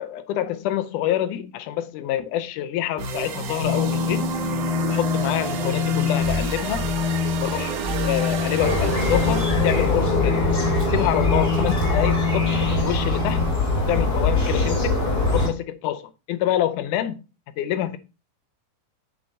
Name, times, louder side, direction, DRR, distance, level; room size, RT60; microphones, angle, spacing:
voice 1, 0.0-4.3 4.9-6.9 7.4-10.4 10.9-13.4 13.9-15.0 15.3-17.2 17.6-18.0, left 12 dB, 90° left, 2.2 m, -26 dB
sound 1, 3.0-10.1, right 3 dB, 80° right, 2.7 m, -30 dB
sound 2, 3.6-13.5, left 6 dB, 45° right, 3.6 m, -27 dB
sound 3, 8.6-15.5, left 2 dB, 30° left, 3.5 m, -22 dB
7.5 x 6.8 x 2.7 m
omnidirectional pair, 3.5 m